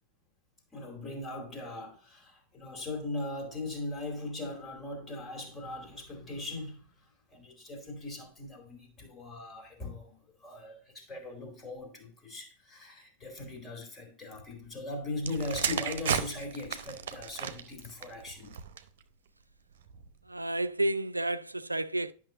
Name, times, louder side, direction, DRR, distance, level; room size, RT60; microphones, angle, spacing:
voice 1, 0.7-6.9 7.3-18.6, left 2 dB, 20° left, 2.6 m, -39 dB
sound 1, 15.2-19.0 19.8-20.1, right 8 dB, 60° right, 0.7 m, -35 dB
voice 2, 20.3-22.1, right 1 dB, 85° right, 0.3 m, -31 dB
11.0 x 6.1 x 2.5 m
figure-of-eight pair, 90°, 0 cm